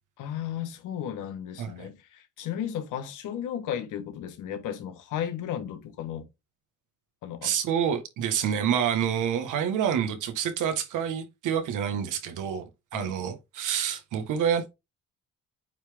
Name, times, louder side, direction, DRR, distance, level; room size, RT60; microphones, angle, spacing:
voice 1, 0.2-6.3 7.2-7.5 12.9-13.1, left 9 dB, 90° left, 1.4 m, -34 dB
voice 2, 1.6-1.9 7.4-14.7, right 8 dB, 85° right, 1.6 m, -28 dB
8.7 x 3.4 x 3.5 m
cardioid pair, 90°, 30 cm